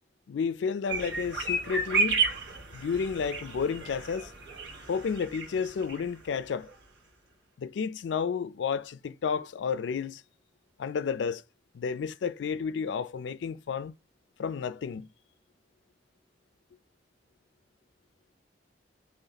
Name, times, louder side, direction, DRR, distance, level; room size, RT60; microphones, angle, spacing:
voice 1, 0.3-2.2 2.7-4.3 4.9-6.7 7.6-10.2 10.8-11.4 11.7-14.0 14.4-15.1, left 6 dB, 80° left, 0.4 m, -31 dB
sound 1, 0.9-6.0 6.3-6.4 6.7-6.8, right 4 dB, 75° right, 1.5 m, -32 dB
3.9 x 2.9 x 4.1 m
head